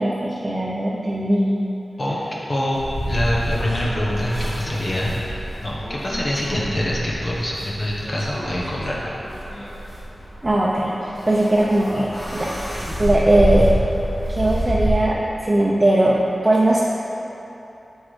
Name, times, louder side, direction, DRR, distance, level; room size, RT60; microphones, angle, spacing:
voice 1, 0.0-1.6 10.4-13.7 14.3-16.2 16.4-16.8, right 1 dB, 25° right, -5 dB, 0.6 m, -19 dB
voice 2, 2.5-2.8 3.1-5.2 5.6-9.1, left 1 dB, 55° left, -5 dB, 1.0 m, -25 dB
sound 1, 2.7-14.9, right 1 dB, 35° left, 1.5 m, -27 dB
7.2 x 5.8 x 3.2 m, 2.9 s
cardioid pair, 50°, 0 cm